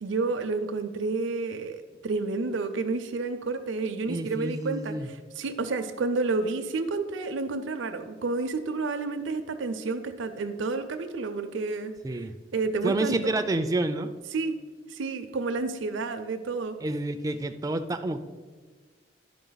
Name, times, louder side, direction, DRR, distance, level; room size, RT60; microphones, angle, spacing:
voice 1, 0.0-11.9 12.5-13.4 14.3-14.6 14.9-16.8, right 3 dB, 90° right, 7 dB, 0.5 m, -30 dB
voice 2, 4.1-5.1 12.0-12.3 12.8-14.1 16.8-18.2, right 2 dB, 20° right, 8 dB, 0.3 m, -29 dB
11.0 x 4.9 x 3.9 m, 1.4 s
head